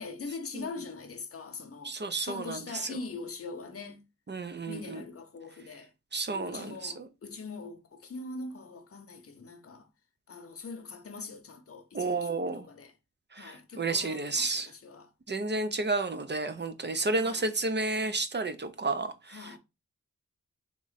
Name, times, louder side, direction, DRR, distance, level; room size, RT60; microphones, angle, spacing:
voice 1, 0.0-1.9 2.2-4.0 4.7-5.9 6.3-9.9 10.3-12.9 13.4-15.1 17.1-17.5 19.3-19.6, left 4 dB, 45° left, 0.8 m, -42 dB
voice 2, 1.8-3.0 4.3-5.0 6.1-7.1 11.9-12.7 13.3-14.7 15.3-19.6, right 3 dB, 35° right, 0.6 m, -31 dB
3.7 x 3.0 x 4.0 m
wide cardioid pair, 85°, 32 cm